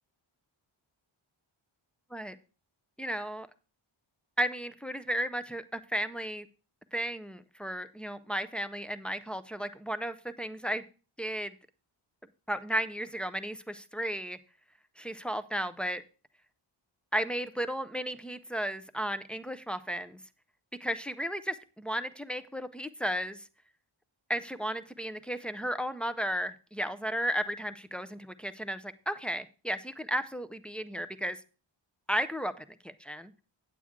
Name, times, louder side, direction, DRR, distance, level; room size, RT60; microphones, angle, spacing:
voice 1, 3.0-3.5 4.4-6.5 6.9-10.8 11.2-11.5 12.5-14.4 15.0-16.0 17.1-20.2 20.8-23.4 24.3-31.4 32.1-33.3, equal, ahead, 9 dB, 0.3 m, -34 dB
8.5 x 8.5 x 3.6 m, 0.36 s
wide cardioid pair, 145°, 49 cm